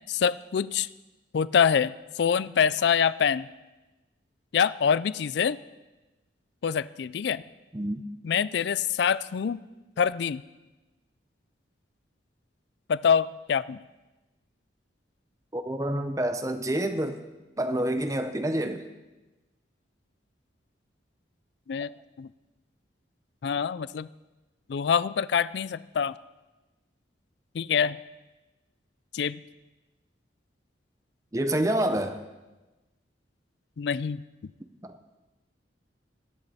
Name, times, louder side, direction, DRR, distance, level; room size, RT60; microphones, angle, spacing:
voice 1, 0.1-0.9 1.3-3.5 4.5-5.6 6.6-7.4 8.2-9.6 10.0-10.4 12.9-13.8 21.7-21.9 22.2-22.3 23.4-24.1 24.7-26.1 27.5-28.0 29.1-29.4 33.8-34.2, left 7 dB, 65° left, 18 dB, 0.4 m, -25 dB
voice 2, 15.5-17.2 17.6-18.8 31.3-32.2 34.8-34.9, right 1 dB, 15° right, 8 dB, 0.6 m, -28 dB
22.0 x 9.9 x 4.2 m, 1.1 s
head